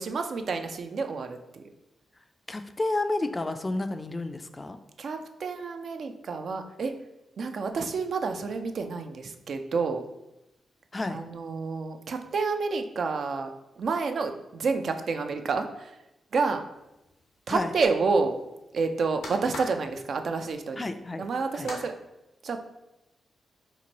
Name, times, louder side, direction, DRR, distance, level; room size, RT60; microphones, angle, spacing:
voice 1, 0.0-1.6 5.0-7.0 7.4-10.0 11.1-13.5 13.8-15.9 16.3-16.6 17.5-18.3 18.7-20.9 21.2-21.9 22.4-22.6, right 4 dB, 65° right, 6 dB, 0.3 m, -29 dB
voice 2, 2.5-4.8 10.9-11.2 17.5-17.7 20.8-21.3 21.5-21.7, left 2 dB, 30° left, 9 dB, 0.3 m, -30 dB
sound 1, 16.7-21.9, left 2 dB, 90° left, 0.8 m, -44 dB
3.0 x 2.2 x 3.9 m, 0.90 s
supercardioid pair, 45°, 0 cm